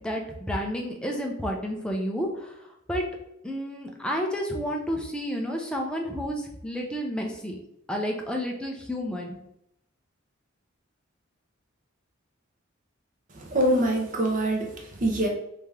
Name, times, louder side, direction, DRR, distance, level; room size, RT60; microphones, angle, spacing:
voice 1, 0.0-2.6 2.9-3.0 3.4-7.6 7.9-9.4, equal, 5° left, 0 dB, 0.5 m, -30 dB
voice 2, 13.3-15.3, right 1 dB, 40° right, 1 dB, 0.8 m, -25 dB
3.3 x 2.8 x 3.5 m, 0.78 s
head